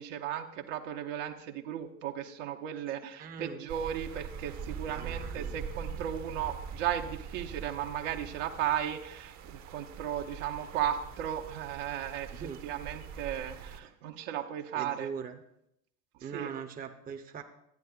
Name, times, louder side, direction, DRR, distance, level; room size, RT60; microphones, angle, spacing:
voice 1, 0.0-15.1 16.2-16.5, right 10 dB, 60° right, 3 dB, 1.0 m, -35 dB
voice 2, 3.2-3.6 4.9-5.5 12.3-12.6 14.7-15.4 16.2-17.4, right 7 dB, 20° right, 5 dB, 0.8 m, -41 dB
sound 1, 3.7-13.8, right 6 dB, 40° right, 0.9 m, -43 dB
13.0 x 9.2 x 2.4 m, 0.78 s
figure-of-eight pair, 75°, 43 cm